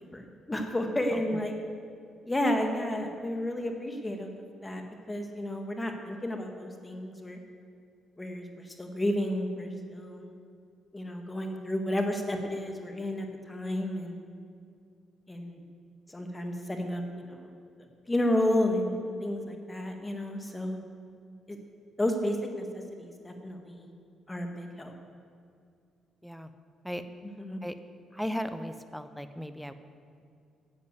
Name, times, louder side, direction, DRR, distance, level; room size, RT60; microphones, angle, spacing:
voice 1, 0.1-1.5 2.2-4.8 5.1-7.4 8.2-10.3 10.9-14.2 15.3-15.6 16.1-17.5 18.1-20.8 21.5-21.6 22.0-23.9 24.3-24.9 27.4-27.6, left 1 dB, 15° left, 4 dB, 1.6 m, -32 dB
voice 2, 28.1-29.7, equal, ahead, 10 dB, 0.7 m, -36 dB
11.0 x 7.3 x 8.0 m, 2.3 s
cardioid pair, 90°, 0 cm